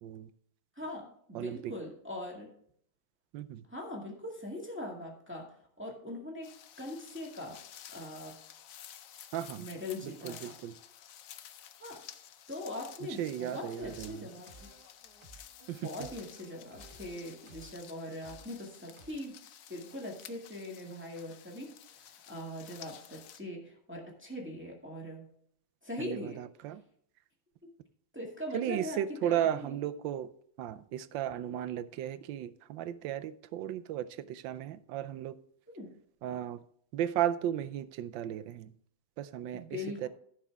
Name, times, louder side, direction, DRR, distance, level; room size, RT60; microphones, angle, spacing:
voice 1, 0.8-2.5 3.7-6.5 6.8-7.6 7.9-8.4 9.6-10.5 11.8-12.0 12.5-14.7 15.8-19.4 19.7-25.3 25.8-26.4 27.6-27.7 28.1-29.7 35.7-35.9 39.5-40.1, left 1 dB, 5° right, -1 dB, 1.8 m, -41 dB
voice 2, 1.3-1.7 3.3-3.6 9.3-9.7 10.0-10.7 13.2-14.3 15.7-15.9 26.0-26.8 28.5-30.3 30.6-35.4 36.2-36.6 36.9-38.7 39.2-40.1, right 11 dB, 75° right, 13 dB, 1.3 m, -35 dB
sound 1, 6.4-23.4, left 10 dB, 80° left, 0.7 m, -52 dB
sound 2, 13.8-19.1, right 1 dB, 25° right, 0.8 m, -56 dB
14.5 x 6.2 x 3.5 m, 0.64 s
omnidirectional pair, 2.2 m